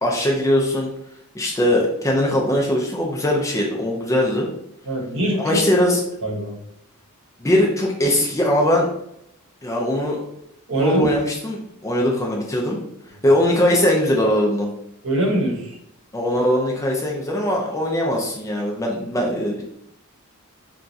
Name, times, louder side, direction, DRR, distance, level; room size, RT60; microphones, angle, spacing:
voice 1, 0.0-0.9 1.3-4.5 5.4-6.0 7.4-8.9 9.6-10.2 10.8-12.8 13.2-14.7 16.1-19.6, left 1 dB, 15° left, -2 dB, 0.4 m, -20 dB
voice 2, 4.8-5.6 6.2-6.6 10.7-11.1 15.0-15.8, right 1 dB, 60° right, -3 dB, 0.9 m, -23 dB
2.9 x 2.4 x 2.6 m, 0.77 s
head